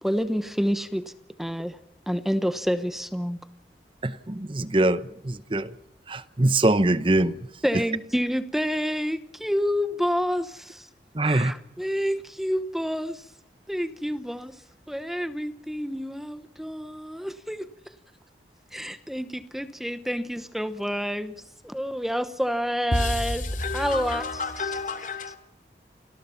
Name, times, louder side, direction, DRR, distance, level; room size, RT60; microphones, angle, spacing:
voice 1, 0.0-1.1 1.4-1.8 2.1-3.4 7.6-10.9 11.2-13.3 13.7-14.6 14.9-17.9 18.7-23.5 23.7-24.8, equal, ahead, 0.9 m, -28 dB
voice 2, 4.0-5.7 6.1-7.3 11.1-11.5, right 2 dB, 30° right, 0.9 m, -23 dB
voice 3, 22.9-25.4, left 2 dB, 45° left, 3.1 m, -29 dB
29.5 x 20.5 x 5.7 m
head